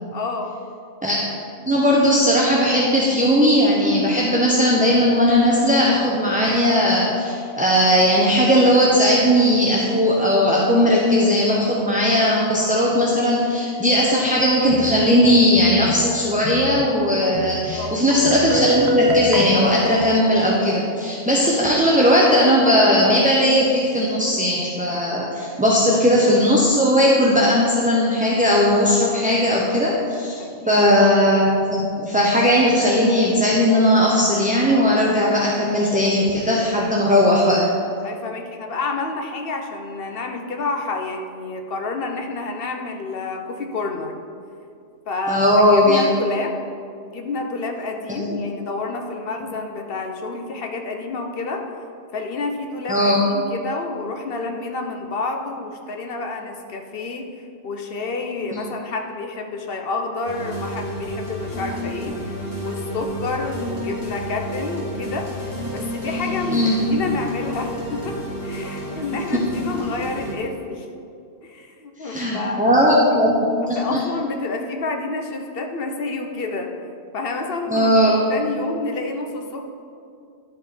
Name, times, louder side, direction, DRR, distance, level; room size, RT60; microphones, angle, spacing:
voice 1, 0.1-0.6 17.7-18.0 30.4-30.8 38.0-44.2 45.1-46.6 47.0-51.7 52.1-65.3 65.7-70.9 71.4-73.2 73.6-76.7 77.1-79.7, left 3 dB, 55° left, 3 dB, 0.9 m, -29 dB
voice 2, 1.7-30.4 30.7-37.7 45.3-46.0 48.1-48.3 52.9-53.2 66.5-66.8 69.1-69.4 72.0-73.4 73.7-74.0 77.7-78.1, equal, 10° right, -4 dB, 0.6 m, -18 dB
sound 1, 14.6-17.0 17.3-20.2, left 2 dB, 40° left, 0.4 m, -34 dB
Guitar, 18.1-20.9, equal, 65° right, 1.1 m, -23 dB
sound 2, 60.3-70.3, equal, 75° left, 2.0 m, -30 dB
11.0 x 5.2 x 4.2 m, 2.4 s
omnidirectional pair, 1.2 m